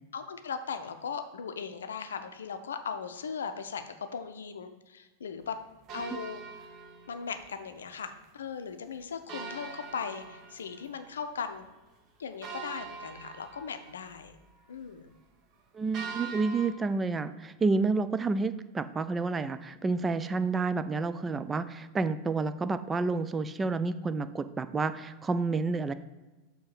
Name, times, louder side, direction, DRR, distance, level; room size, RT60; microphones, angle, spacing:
voice 1, 0.1-5.6 5.9-6.4 7.1-11.7 12.2-14.3 14.7-15.1, left 6 dB, 65° left, 8 dB, 0.6 m, -38 dB
sound 1, 5.9-7.6 7.9-8.0 8.2-8.3 9.3-11.2 11.6-11.7 12.4-14.2 15.9-16.7, right 5 dB, 35° right, 1.1 m, -43 dB
voice 2, 15.7-25.9, right 3 dB, 15° right, 12 dB, 0.4 m, -29 dB
6.5 x 3.5 x 6.0 m, 1.2 s
figure-of-eight pair, 90°, 0 cm